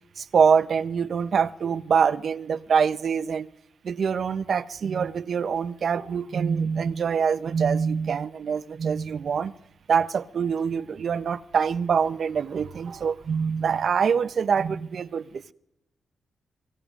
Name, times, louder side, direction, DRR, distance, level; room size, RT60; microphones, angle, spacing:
voice 1, 0.2-3.5 3.8-9.5 9.9-15.5, right 6 dB, 65° right, 0.6 m, -24 dB
24.5 x 17.0 x 2.5 m
cardioid pair, 75°, 0 cm